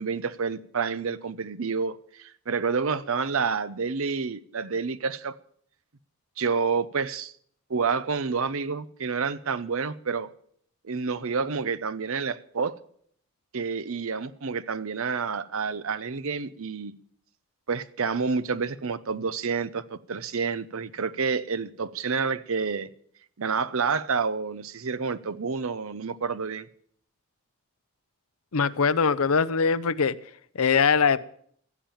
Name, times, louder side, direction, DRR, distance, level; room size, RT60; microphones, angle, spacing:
voice 1, 0.0-5.3 6.4-7.3 7.7-10.3 10.8-12.7 13.5-16.9 17.7-22.9 23.4-26.7, right 5 dB, 70° right, 15 dB, 0.7 m, -29 dB
voice 2, 28.5-30.2 30.5-31.2, left 5 dB, 80° left, 15 dB, 0.7 m, -22 dB
16.0 x 7.4 x 8.8 m, 0.63 s
head